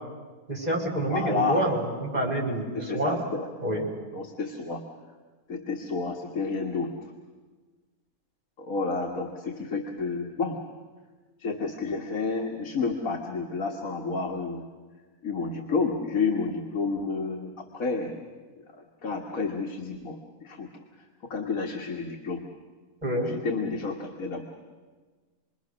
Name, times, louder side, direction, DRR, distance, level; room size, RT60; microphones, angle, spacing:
voice 1, 0.5-3.1 3.6-3.9 23.0-23.3, right 1 dB, 25° right, -1 dB, 4.7 m, -27 dB
voice 2, 1.1-1.7 2.7-3.5 4.1-4.8 5.5-6.9 8.6-10.6 11.4-14.7 15.2-18.1 19.0-20.7 21.3-22.5 23.2-24.4, left 4 dB, 70° left, 1 dB, 2.0 m, -30 dB
28.5 x 21.0 x 6.3 m, 1.4 s
omnidirectional pair, 1.5 m